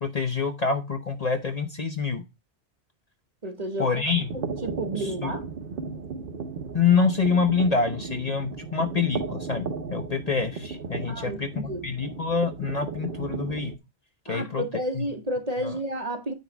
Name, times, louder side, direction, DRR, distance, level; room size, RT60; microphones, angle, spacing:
voice 1, 0.0-2.2 3.8-4.3 5.2-5.3 6.7-13.7 14.3-14.6 15.0-15.1 15.6-15.8, left 5 dB, 40° left, 0.8 m, -26 dB
voice 2, 3.4-3.9 4.6-5.5 11.1-11.9 14.3-16.3, right 1 dB, 35° right, 1.1 m, -31 dB
sound 1, 4.1-13.8, right 5 dB, 60° right, 0.9 m, -35 dB
9.3 x 3.2 x 5.9 m
omnidirectional pair, 1.1 m